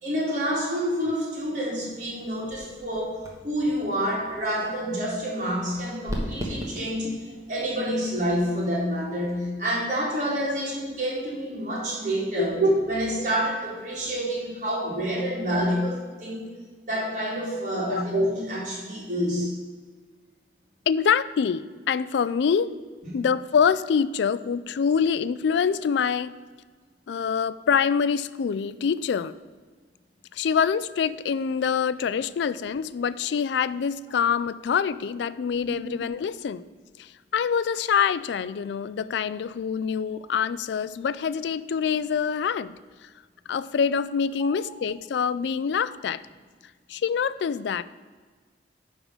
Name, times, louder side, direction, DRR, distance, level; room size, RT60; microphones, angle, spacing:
voice 1, 0.0-7.1 7.5-16.5 16.8-19.5 23.0-23.2 35.7-35.8 44.4-44.5, equal, 40° right, -4 dB, 2.5 m, -28 dB
sound 1, 1.8-9.5, equal, 15° right, 1.3 m, -40 dB
voice 2, 20.9-22.7 23.1-26.3 27.1-29.3 30.3-36.6 37.0-43.1 43.5-46.2 46.9-47.8, left 6 dB, 70° left, 17 dB, 0.3 m, -25 dB
9.9 x 3.7 x 6.5 m, 1.4 s
head